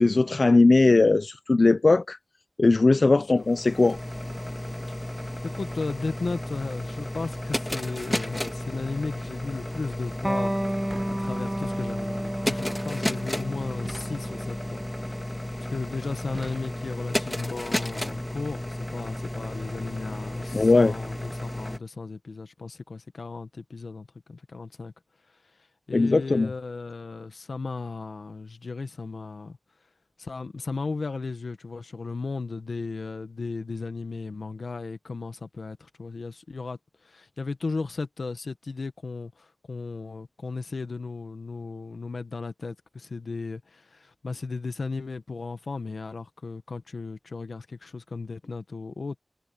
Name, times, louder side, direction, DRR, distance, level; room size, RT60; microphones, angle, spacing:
voice 1, 0.0-2.2 2.6-4.0 20.5-20.9 25.9-26.5, left 3 dB, 55° left, 0.5 m, -19 dB
sound 1, 3.3-21.8, left 1 dB, 15° left, 1.8 m, -33 dB
voice 2, 5.4-10.5 11.1-14.8 15.7-24.9 25.9-29.6 30.2-36.8 37.0-49.2, left 4 dB, 85° left, 1.4 m, -35 dB
Electric guitar, 10.2-17.4, right 1 dB, 10° right, 0.7 m, -33 dB
sound 2, 10.9-11.8 13.8-14.5 16.3-17.1, right 2 dB, 35° right, 1.9 m, -44 dB
wide cardioid pair, 80°, 0 cm